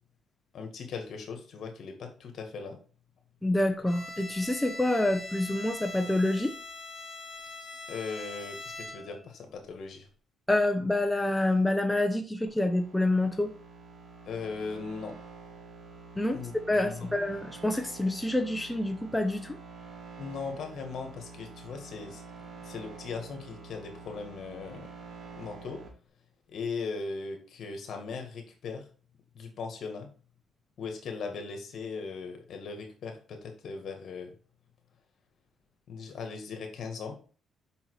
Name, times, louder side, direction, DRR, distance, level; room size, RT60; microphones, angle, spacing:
voice 1, 0.5-2.8 7.9-10.1 14.3-15.2 16.3-17.2 20.2-22.2 22.6-24.9 25.4-25.8 26.5-28.8 29.3-30.1 30.8-34.3 35.9-37.2, left 4 dB, 65° left, 4 dB, 1.9 m, -39 dB
voice 2, 3.4-6.5 10.5-13.5 16.2-16.4 16.7-19.6, left 1 dB, 10° left, 6 dB, 0.8 m, -27 dB
Bowed string instrument, 3.8-9.3, left 2 dB, 30° left, 2.6 m, -42 dB
sound 1, 12.5-25.9, right 4 dB, 65° right, 3.6 m, -48 dB
5.7 x 5.5 x 4.9 m, 0.40 s
cardioid pair, 90°, 0 cm